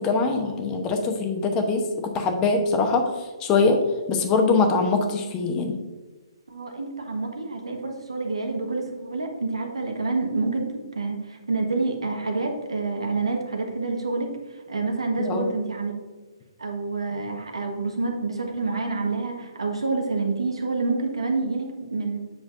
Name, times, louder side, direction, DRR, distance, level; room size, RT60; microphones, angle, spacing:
voice 1, 0.0-3.1 3.4-3.8 4.1-5.8 15.2-15.5, left 4 dB, 25° left, 4 dB, 0.9 m, -23 dB
voice 2, 6.5-15.9 16.6-22.2, right 3 dB, 85° right, 3 dB, 1.4 m, -28 dB
7.6 x 5.9 x 2.6 m, 1.3 s
hypercardioid pair, 140°, 3 cm